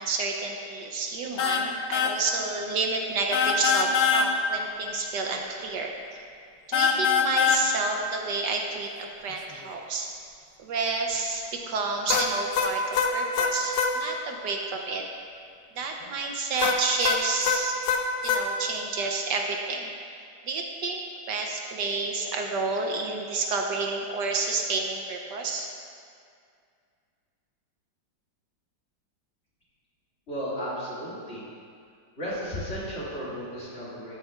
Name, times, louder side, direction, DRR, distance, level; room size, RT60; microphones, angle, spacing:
voice 1, 0.0-5.9 6.7-10.1 10.6-15.0 15.8-17.8 18.2-25.7, right 3 dB, 70° right, 2 dB, 1.3 m, -30 dB
sound 1, 1.4-1.7 1.9-2.2 3.3-4.3 6.7-7.6 12.1-13.9 16.6-18.4, left 6 dB, 65° left, 1.1 m, -23 dB
voice 2, 30.3-31.5 32.2-34.2, equal, 35° left, -8 dB, 2.5 m, -34 dB
13.5 x 9.8 x 2.4 m, 2.3 s
omnidirectional pair, 2.0 m